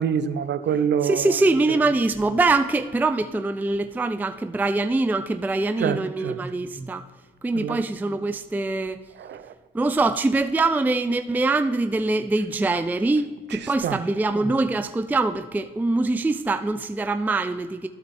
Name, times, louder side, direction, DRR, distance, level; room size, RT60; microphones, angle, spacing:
voice 1, 0.0-1.3 5.8-6.0 6.2-6.4 7.6-7.8 9.2-9.4 13.8-14.0, right 8 dB, 60° right, 0.7 m, -25 dB
voice 2, 1.0-7.0 7.4-9.0 9.7-17.9, right 3 dB, 10° right, 0.4 m, -23 dB
12.5 x 4.4 x 4.2 m
cardioid pair, 90°, 20 cm